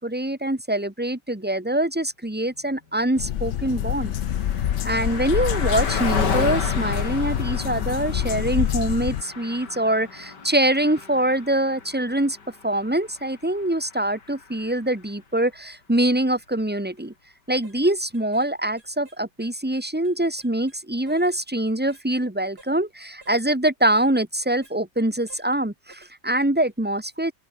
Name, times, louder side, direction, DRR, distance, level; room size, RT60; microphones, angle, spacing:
voice 1, 0.0-4.1 4.8-12.4 12.6-17.1 17.5-27.3, right 1 dB, 5° right, 1.6 m, -24 dB
Car passing by, 3.1-14.9, left 5 dB, 80° left, 3.3 m, -33 dB
sound 1, 3.2-9.2, left 11 dB, 60° left, 0.8 m, -26 dB
sound 2, 17.0-17.1 17.5-17.8 18.1-18.5 18.8-20.8 21.1-21.4 21.9-22.1 22.6-22.7 23.2-23.4 23.9-24.1 24.6-24.8 25.3-25.5 25.9-26.1 26.6-26.7, right 2 dB, 65° right, 7.1 m, -51 dB
open air
omnidirectional pair, 1.8 m